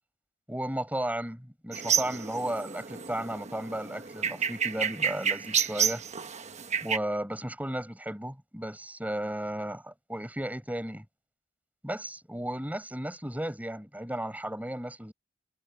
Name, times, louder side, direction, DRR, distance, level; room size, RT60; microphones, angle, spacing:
voice 1, 0.5-6.0 6.8-11.1 11.8-15.1, right 1 dB, 10° right, 7.4 m, -34 dB
sound 1, 1.7-7.0, right 7 dB, 35° right, 1.1 m, -30 dB
head